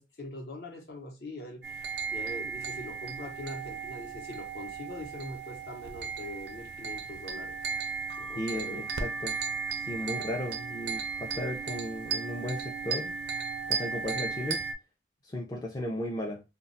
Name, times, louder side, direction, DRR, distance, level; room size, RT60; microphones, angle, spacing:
voice 1, 0.0-7.6 8.2-8.9 14.1-14.2, left 1 dB, 55° left, 0.7 m, -43 dB
sound 1, 1.6-14.7, right 5 dB, 65° right, 0.4 m, -35 dB
voice 2, 8.4-9.4 9.9-13.2 13.7-14.6 15.2-16.4, left 1 dB, 20° left, 0.4 m, -35 dB
2.2 x 2.0 x 3.8 m
head